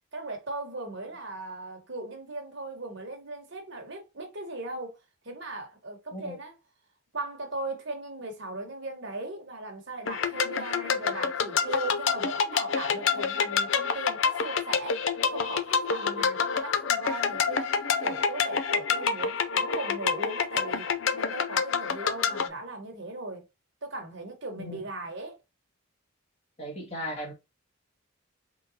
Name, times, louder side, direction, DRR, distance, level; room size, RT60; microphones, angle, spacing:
voice 1, 0.1-4.9 5.2-6.5 7.1-15.0 15.3-20.9 21.1-23.4 23.8-25.4, right 2 dB, 55° right, 1.3 m, -38 dB
sound 1, 10.1-22.5, left 6 dB, 60° left, 0.5 m, -27 dB
voice 2, 26.6-27.3, equal, 30° left, 1.6 m, -36 dB
3.9 x 3.8 x 2.8 m
head